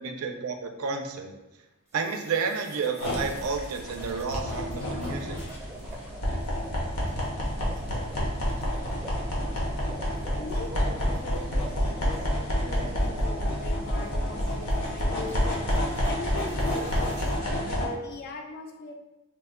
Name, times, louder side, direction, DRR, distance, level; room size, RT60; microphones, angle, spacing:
voice 1, 0.0-1.4 1.9-5.4, right 5 dB, 75° right, 5 dB, 0.4 m, -31 dB
sound 1, 1.9-17.3, right 1 dB, 15° right, 0.6 m, -46 dB
sound 2, 3.0-17.9, equal, 85° left, 0.9 m, -29 dB
voice 2, 10.4-15.6 16.0-17.2 17.6-18.9, left 3 dB, 45° left, 4 dB, 0.4 m, -40 dB
2.9 x 2.1 x 3.5 m, 0.98 s
head